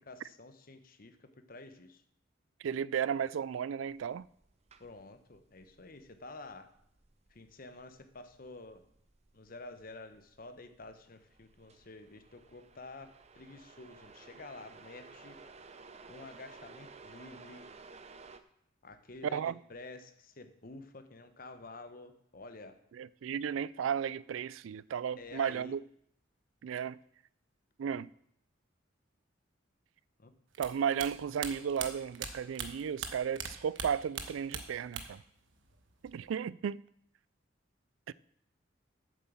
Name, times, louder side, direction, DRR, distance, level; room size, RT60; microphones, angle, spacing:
voice 1, 0.1-2.0 4.8-6.7 7.3-8.9 9.3-15.4 16.1-17.7 18.8-22.8 25.2-25.8 30.2-30.3, left 3 dB, 45° left, 1.0 m, -50 dB
voice 2, 2.6-4.3 19.2-19.5 23.0-25.8 26.6-27.0 27.8-28.1 30.6-35.2 36.0-36.8 38.1-38.2, right 8 dB, 85° right, 0.3 m, -34 dB
sound 1, 3.9-18.4, right 4 dB, 35° right, 0.6 m, -56 dB
sound 2, 30.5-33.5 33.7-35.3 35.5-36.3, right 7 dB, 70° right, 1.2 m, -40 dB
8.4 x 7.7 x 7.2 m
head